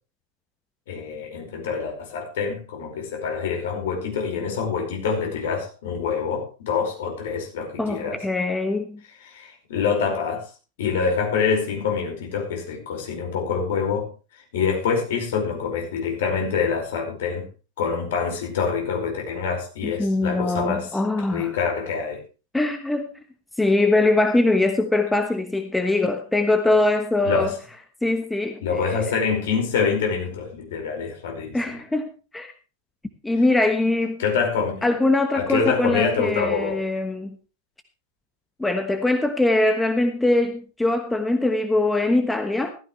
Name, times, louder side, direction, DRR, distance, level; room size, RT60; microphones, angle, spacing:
voice 1, 0.9-8.2 9.2-10.5 10.8-14.1 14.5-17.5 17.8-22.2 27.2-27.5 28.6-31.6 34.2-34.9 35.3-36.8, left 6 dB, 55° left, 2 dB, 5.1 m, -26 dB
voice 2, 7.8-9.0 19.8-21.5 22.5-23.2 23.6-27.5 28.0-29.0 31.5-32.5 33.2-34.2 34.8-37.4 38.6-42.7, left 2 dB, 5° left, 7 dB, 1.2 m, -22 dB
15.5 x 14.0 x 3.2 m, 0.34 s
figure-of-eight pair, 90°, 0 cm